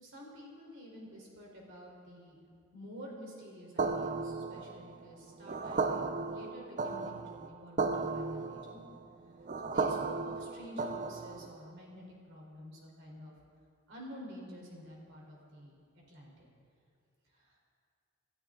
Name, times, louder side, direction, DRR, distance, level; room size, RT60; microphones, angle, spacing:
voice 1, 0.0-2.4 2.7-8.8 9.6-13.3 13.9-16.5 17.3-17.7, equal, 60° right, -2 dB, 4.0 m, -50 dB
sound 1, 3.8-11.6, right 4 dB, 35° right, 0.6 m, -35 dB
28.0 x 12.5 x 3.8 m, 2.2 s
head